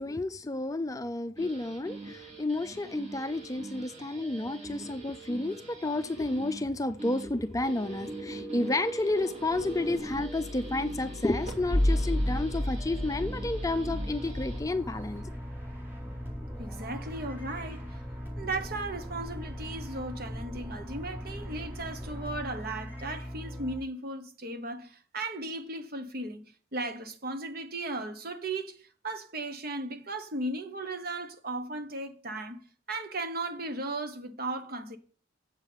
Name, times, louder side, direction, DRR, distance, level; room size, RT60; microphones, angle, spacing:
voice 1, 0.0-15.2, left 2 dB, 20° left, 0.5 m, -31 dB
sound 1, 1.4-14.6, equal, 35° right, 2.9 m, -35 dB
sound 2, 11.4-23.8, equal, 10° right, 4.3 m, -40 dB
voice 2, 16.6-18.0 18.4-26.4 26.7-32.6 32.9-35.0, right 2 dB, 55° right, 1.3 m, -36 dB
8.0 x 7.4 x 5.7 m
head